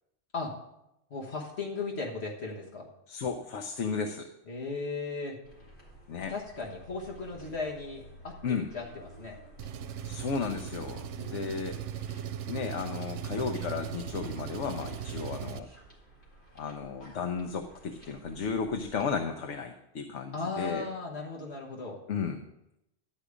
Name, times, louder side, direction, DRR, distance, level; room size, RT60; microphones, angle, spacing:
voice 1, 1.1-2.9 4.5-5.4 6.3-9.4 11.2-11.6 20.3-22.0, left 4 dB, 65° left, -2 dB, 1.7 m, -37 dB
voice 2, 3.1-4.3 6.1-6.3 8.4-8.7 10.0-11.8 12.5-15.7 16.5-20.9 22.1-22.4, left 5 dB, 80° left, 5 dB, 1.1 m, -34 dB
sound 1, 5.4-19.2, right 1 dB, 45° left, 3.2 m, -53 dB
Engine, 9.6-15.6, right 8 dB, 85° right, 0.9 m, -38 dB
12.0 x 5.0 x 8.2 m, 0.84 s
omnidirectional pair, 1.2 m